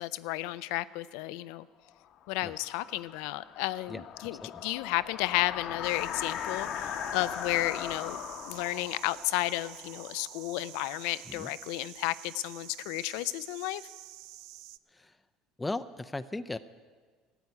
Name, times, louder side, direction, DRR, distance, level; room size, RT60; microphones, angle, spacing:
voice 1, 0.0-1.7 2.3-4.4 4.6-8.2 8.5-13.8, left 17 dB, 70° left, 16 dB, 0.4 m, -32 dB
sound 1, 2.2-10.9, left 9 dB, 55° left, 0.9 m, -39 dB
voice 2, 3.9-4.6 11.2-11.5 14.9-15.2 15.6-16.6, left 2 dB, 15° left, 10 dB, 0.5 m, -38 dB
sound 2, 5.8-14.8, right 15 dB, 70° right, 0.4 m, -49 dB
13.0 x 8.0 x 9.7 m, 1.5 s
hypercardioid pair, 75°, 0 cm